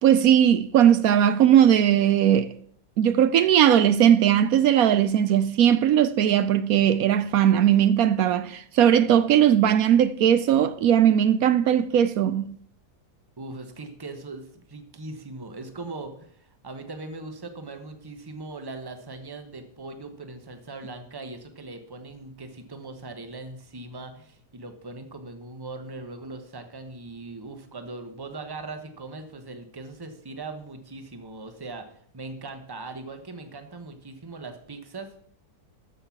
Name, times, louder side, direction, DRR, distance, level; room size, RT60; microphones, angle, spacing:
voice 1, 0.0-2.5 3.0-12.5, right 10 dB, 70° right, 1.0 m, -19 dB
voice 2, 13.4-35.1, right 3 dB, 15° right, 1.0 m, -40 dB
13.0 x 6.6 x 5.8 m
omnidirectional pair, 1.8 m